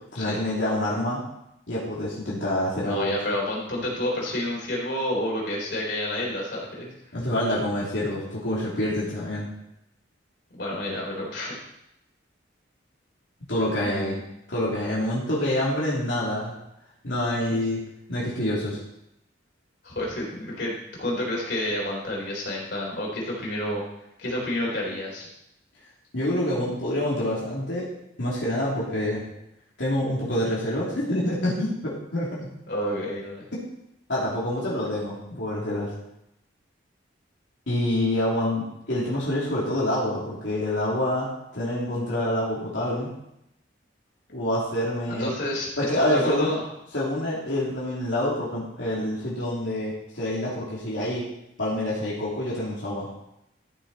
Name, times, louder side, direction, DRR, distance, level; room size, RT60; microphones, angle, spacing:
voice 1, 0.1-1.2 1.7-3.1 7.1-9.5 13.5-14.2 14.5-16.5 17.0-17.8 18.1-18.8 26.1-27.9 28.2-29.2 29.8-32.5 33.5-33.6 34.1-35.9 37.7-43.1 44.3-45.3 45.8-46.5 46.9-51.3 51.6-53.1, left 1 dB, 75° left, -7 dB, 3.0 m, -27 dB
voice 2, 2.8-6.9 10.6-11.5 13.8-14.2 17.5-17.6 19.8-20.7 21.0-23.8 24.2-25.3 32.7-33.5 45.1-46.6, left 1 dB, 60° left, -3 dB, 3.9 m, -29 dB
14.0 x 6.8 x 4.3 m, 0.82 s
head